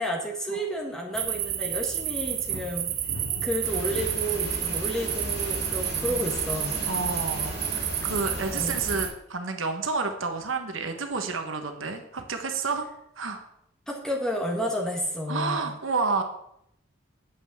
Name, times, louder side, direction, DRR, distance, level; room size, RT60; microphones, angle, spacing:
voice 1, 0.0-2.9 3.4-6.8 8.5-8.8 13.9-15.7, equal, 5° left, -1 dB, 1.6 m, -31 dB
sound 1, 1.1-9.1, right 10 dB, 45° right, 0.9 m, -30 dB
sound 2, 2.5-4.4 5.1-5.5, left 1 dB, 90° left, 4.2 m, -39 dB
sound 3, 3.6-9.1, equal, 60° left, 4.3 m, -36 dB
voice 2, 5.9-6.4 6.9-12.9 13.2-13.4 15.3-16.2, right 4 dB, 70° right, 5 dB, 1.3 m, -30 dB
8.5 x 5.7 x 7.7 m, 0.76 s
head